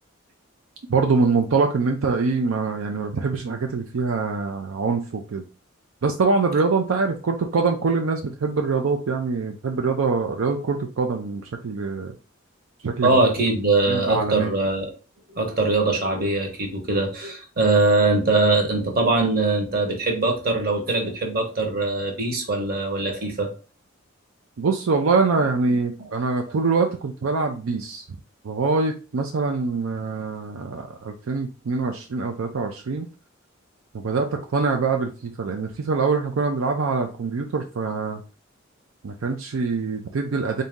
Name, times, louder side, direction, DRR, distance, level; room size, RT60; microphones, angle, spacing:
voice 1, 0.9-5.4 6.0-12.1 12.8-13.2 13.9-14.5 24.6-28.0 28.4-33.1 33.9-38.2 39.0-40.6, right 4 dB, 80° right, 4 dB, 0.5 m, -24 dB
voice 2, 13.0-14.9 15.3-23.5, right 3 dB, 45° right, 2 dB, 1.1 m, -22 dB
4.0 x 2.7 x 3.5 m, 0.34 s
head